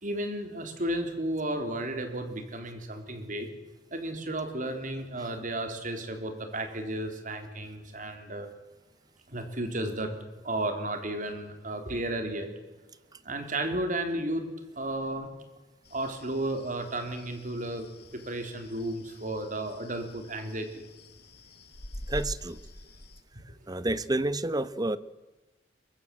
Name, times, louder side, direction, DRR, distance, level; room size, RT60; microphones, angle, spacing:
voice 1, 0.0-3.5 3.9-8.5 9.3-10.1 10.4-12.5 13.2-14.5 14.8-15.3 15.9-17.8 18.1-20.8 23.8-23.9, right 1 dB, 45° right, 6 dB, 3.7 m, -33 dB
sound 1, 15.8-23.2, left 1 dB, 60° left, 2.3 m, -46 dB
voice 2, 22.1-22.6 23.7-25.0, right 2 dB, 20° right, 16 dB, 0.9 m, -29 dB
23.0 x 22.0 x 7.7 m, 1.2 s
head